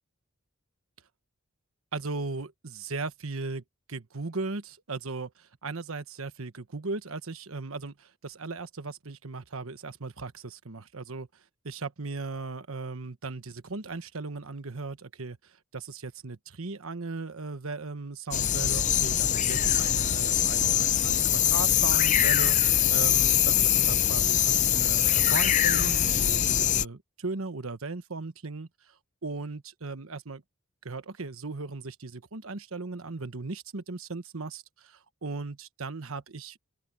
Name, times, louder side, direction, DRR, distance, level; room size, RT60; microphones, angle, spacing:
voice 1, 1.9-3.6 3.9-11.3 11.6-30.4 30.8-36.6, right 3 dB, 90° right, 1.2 m, -37 dB
sound 1, 18.3-26.8, left 11 dB, 35° left, 0.5 m, -23 dB
open air
head